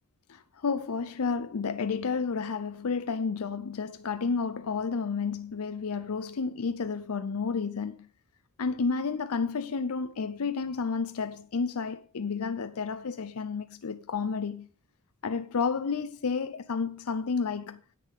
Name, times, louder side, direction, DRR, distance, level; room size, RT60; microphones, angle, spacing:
voice 1, 0.3-8.0 8.6-14.7 15.2-17.8, left 5 dB, 85° left, 0.6 m, -31 dB
9.9 x 8.4 x 5.3 m
head